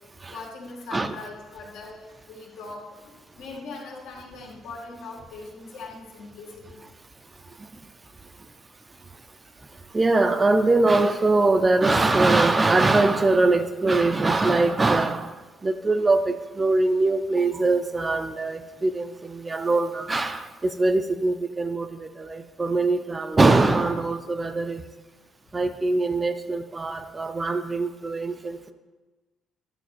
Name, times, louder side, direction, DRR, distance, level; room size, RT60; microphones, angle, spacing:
voice 1, 0.3-6.8 25.6-25.7, left 3 dB, 85° left, -1 dB, 2.1 m, -41 dB
voice 2, 9.9-15.3 15.6-24.8 25.5-28.7, right 2 dB, 15° right, 9 dB, 0.4 m, -22 dB
11.5 x 6.6 x 4.2 m, 1.2 s
cardioid pair, 180°, 0 cm